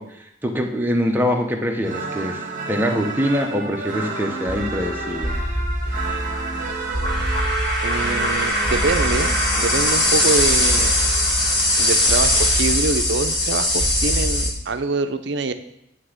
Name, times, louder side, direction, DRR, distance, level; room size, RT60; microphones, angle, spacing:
voice 1, 0.0-2.4 2.7-5.3, equal, 10° right, 2 dB, 0.8 m, -23 dB
sound 1, 1.8-12.2, right 3 dB, 45° right, 1.2 m, -31 dB
sound 2, 4.5-14.5, left 1 dB, 25° left, 1.9 m, -21 dB
voice 2, 7.8-11.0 11.8-15.5, right 3 dB, 60° right, 9 dB, 0.5 m, -25 dB
9.5 x 3.5 x 6.5 m, 0.81 s
head